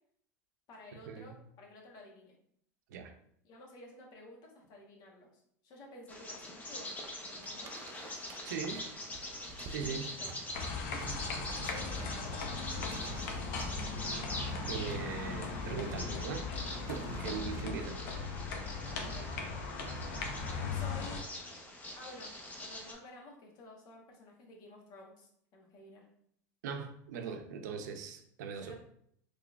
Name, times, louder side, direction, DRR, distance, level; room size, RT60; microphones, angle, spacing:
voice 1, 0.7-2.4 3.4-7.7 9.8-10.3 11.6-13.5 17.2-17.3 19.0-19.3 20.7-21.2 22.0-22.3 22.6-26.1 28.6-28.8, left 1 dB, 50° left, 0 dB, 1.1 m, -52 dB
Bird vocalization bird call bird song, 6.1-22.9, left 1 dB, 15° left, 0.7 m, -44 dB
sound 1, 7.4-17.9, right 4 dB, 35° right, 0.5 m, -52 dB
voice 2, 8.4-8.9 9.7-10.1 14.7-16.5 16.9-18.1 26.6-28.8, right 6 dB, 85° right, 7 dB, 0.5 m, -40 dB
sound 2, 10.5-21.2, left 4 dB, 70° left, 0.7 m, -38 dB
3.8 x 3.1 x 2.4 m, 0.68 s
supercardioid pair, 110°, 9 cm